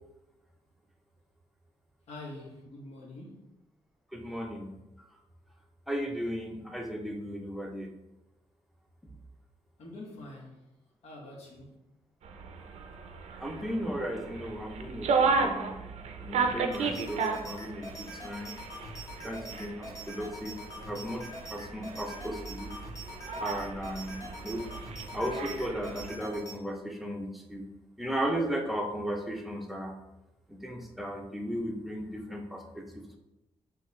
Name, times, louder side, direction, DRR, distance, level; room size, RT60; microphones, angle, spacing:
voice 1, 2.1-3.5 9.8-10.6 11.0-11.8, left 2 dB, 75° left, -3 dB, 1.1 m, -45 dB
voice 2, 4.1-4.7 5.9-7.9 9.0-9.1 13.4-15.9 16.2-18.5 19.2-20.6 20.9-22.7 23.4-24.6 25.1-27.7 28.0-29.9 30.5-33.2, equal, ahead, 1 dB, 0.5 m, -35 dB
sound 1, 12.2-26.1, right 4 dB, 85° right, 0.5 m, -34 dB
sound 2, 16.7-26.6, equal, 30° left, 0.8 m, -44 dB
5.7 x 2.3 x 3.1 m, 0.96 s
wide cardioid pair, 145°, 11 cm